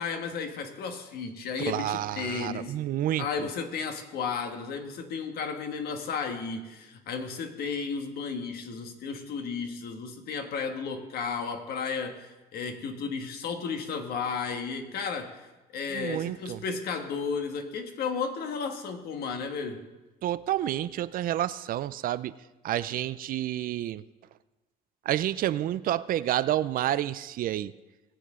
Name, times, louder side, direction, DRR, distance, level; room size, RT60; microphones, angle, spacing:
voice 1, 0.0-2.8 3.2-15.5 15.7-19.9, left 5 dB, 70° left, 6 dB, 1.4 m, -33 dB
voice 2, 1.7-3.3 15.9-16.6 20.2-22.3 22.6-24.0 25.1-27.7, right 12 dB, 55° right, 16 dB, 0.4 m, -29 dB
19.5 x 7.7 x 3.7 m, 1.1 s
cardioid pair, 110°, 17 cm